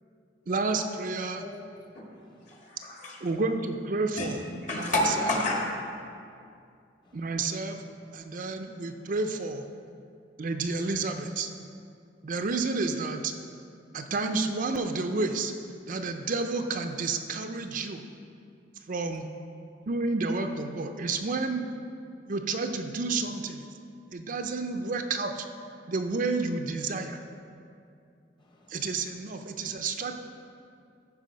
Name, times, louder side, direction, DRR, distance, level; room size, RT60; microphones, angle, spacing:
voice 1, 0.5-1.4 3.2-4.4 4.7-4.9 7.1-7.8 8.1-9.7 10.4-11.5 12.2-13.3 13.9-15.5 15.9-18.0 18.9-19.3 19.9-21.7 22.3-23.7 24.1-25.4 25.9-27.2 28.7-30.2, right 3 dB, 45° right, 5 dB, 0.5 m, -30 dB
voice 2, 1.3-2.6 7.0-7.3 28.4-28.9, left 2 dB, 25° left, 0 dB, 1.2 m, -48 dB
voice 3, 2.5-3.2 4.2-4.3 4.6-5.6, left 1 dB, 40° left, -1 dB, 1.7 m, -29 dB
14.0 x 4.9 x 5.1 m, 2.4 s
head